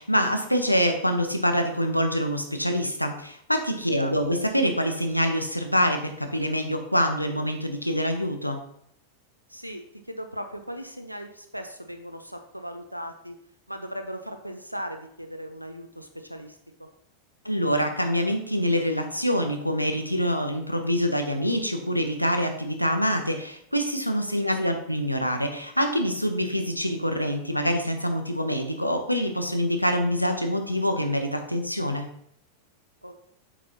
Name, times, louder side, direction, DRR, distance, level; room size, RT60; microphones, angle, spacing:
voice 1, 0.0-8.6 17.4-32.1, equal, 90° left, 5 dB, 0.8 m, -25 dB
voice 2, 9.5-13.4 13.7-16.9 24.4-24.8 33.0-33.1, equal, 90° right, 7 dB, 0.6 m, -38 dB
8.4 x 5.9 x 2.8 m, 0.69 s
figure-of-eight pair, 90°, 0 cm